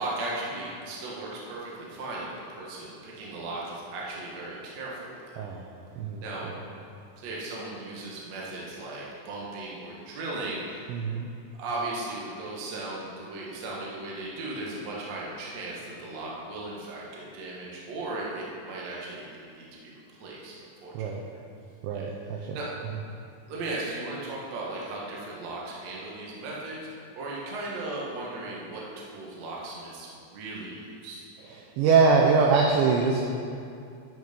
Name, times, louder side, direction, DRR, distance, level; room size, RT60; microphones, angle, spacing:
voice 1, 0.0-5.2 6.2-6.5 7.2-11.2 11.6-20.9 21.9-22.7 23.5-26.8 27.1-31.2, right 2 dB, 60° right, -4 dB, 1.8 m, -37 dB
voice 2, 6.0-6.6 10.9-11.3 20.9-21.2 21.8-22.6 31.8-33.2, right 4 dB, 80° right, 0 dB, 2.6 m, -23 dB
13.0 x 6.3 x 5.3 m, 2.5 s
omnidirectional pair, 5.9 m